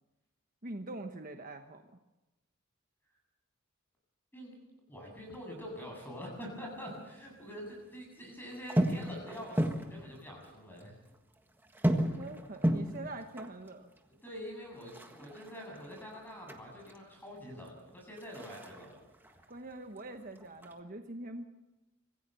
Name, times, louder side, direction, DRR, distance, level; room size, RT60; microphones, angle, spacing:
voice 1, 0.6-2.0 12.2-13.9 19.5-21.7, right 2 dB, 40° right, 5 dB, 1.2 m, -43 dB
voice 2, 4.9-10.9 11.9-12.2 14.2-19.0, equal, 10° left, 0 dB, 8.0 m, -45 dB
sound 1, 5.2-6.8 7.1-8.0 8.5-10.5 10.8-10.9 11.1-17.0 17.4-20.0 20.2-20.8, equal, 10° right, 1.5 m, -35 dB
25.5 x 16.0 x 7.0 m, 1.0 s
head